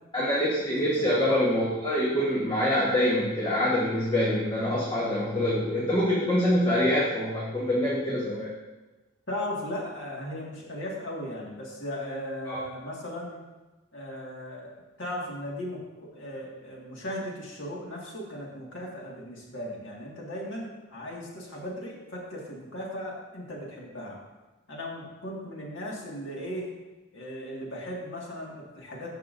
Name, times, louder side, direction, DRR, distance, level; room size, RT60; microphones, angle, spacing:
voice 1, 0.1-8.5 12.5-12.6, left 1 dB, 20° left, -6 dB, 1.2 m, -25 dB
voice 2, 0.7-1.1 9.3-13.4 13.9-24.2 24.7-26.7 27.1-29.1, left 1 dB, 60° left, -3 dB, 2.0 m, -37 dB
14.0 x 5.6 x 2.6 m, 1.2 s
head